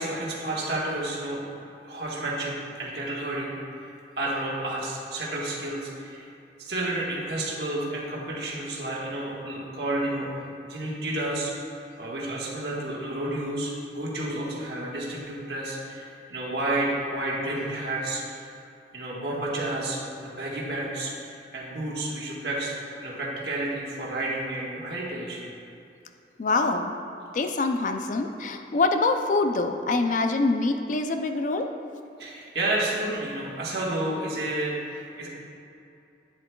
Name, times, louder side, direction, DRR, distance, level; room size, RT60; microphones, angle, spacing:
voice 1, 0.0-1.4 1.8-3.5 3.8-6.3 6.6-10.3 10.6-11.5 12.0-18.4 18.9-25.4 32.2-35.3, right 1 dB, 65° right, -4 dB, 1.5 m, -31 dB
voice 2, 26.4-27.0 27.3-31.7, left 3 dB, 45° left, 6 dB, 0.4 m, -25 dB
9.5 x 7.7 x 2.3 m, 2.7 s
head